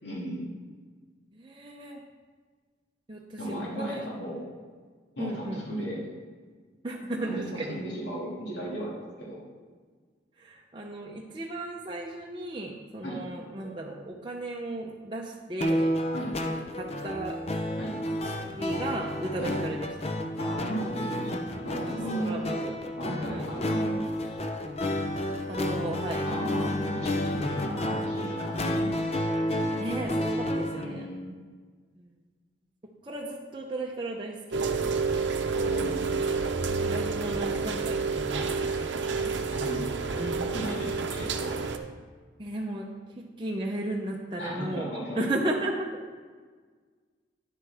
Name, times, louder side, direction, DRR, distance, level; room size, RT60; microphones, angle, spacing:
voice 1, 0.0-0.5 3.4-4.4 5.2-6.0 7.2-9.4 13.0-13.2 16.1-16.3 17.8-17.9 19.4-19.5 20.4-22.3 23.0-24.0 26.2-28.8 30.7-31.4 35.5-36.2 37.3-37.4 38.3-41.6 44.4-45.2, equal, 70° left, -5 dB, 2.2 m, -36 dB
voice 2, 1.3-2.0 3.1-4.0 5.2-5.6 6.8-7.8 10.4-15.9 16.4-17.4 18.2-20.1 21.8-22.8 23.1-23.5 25.5-26.3 27.4-27.5 29.8-31.1 32.0-32.2 33.0-35.0 36.8-38.4 42.4-42.9 43.2-46.1, right 1 dB, 25° right, -1 dB, 0.6 m, -35 dB
sound 1, 15.6-30.8, left 1 dB, 35° left, 0.6 m, -30 dB
Rain, 34.5-41.8, right 4 dB, 75° right, 0.7 m, -29 dB
10.0 x 8.1 x 3.4 m, 1.5 s
head